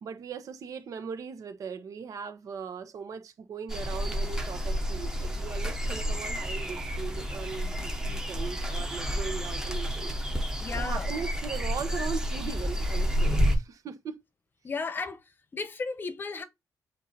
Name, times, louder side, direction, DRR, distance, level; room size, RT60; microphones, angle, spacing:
voice 1, 0.0-10.1 10.7-14.2, right 6 dB, 55° right, 1.1 m, -39 dB
sound 1, 3.7-13.6, equal, 10° right, 1.1 m, -30 dB
voice 2, 10.6-11.1 14.6-15.2 15.5-16.4, left 4 dB, 30° left, 0.9 m, -34 dB
8.2 x 2.8 x 4.1 m
cardioid pair, 145°, 7 cm